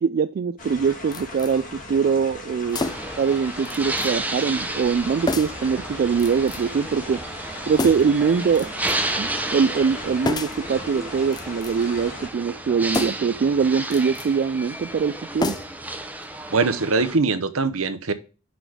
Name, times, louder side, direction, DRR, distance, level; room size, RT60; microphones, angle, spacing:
voice 1, 0.0-2.8 3.2-7.2 7.7-8.7 9.2-15.6, right 6 dB, 45° right, 0.3 m, -22 dB
sound 1, 0.6-12.3, left 2 dB, 40° left, 1.9 m, -39 dB
sound 2, 1.1-1.6 2.7-3.2 3.7-4.1 4.4-4.5 5.3-5.7 6.2-6.8 7.7-8.2 8.6-9.2 10.2-10.7 11.3-11.9 12.9-13.4 13.8-14.3 15.4-15.9 16.2-16.3, left 2 dB, 20° left, 0.4 m, -30 dB
sound 3, 2.7-17.2, right 2 dB, 10° right, 0.8 m, -32 dB
voice 2, 16.5-18.1, right 4 dB, 65° right, 0.9 m, -22 dB
6.1 x 5.0 x 6.2 m
head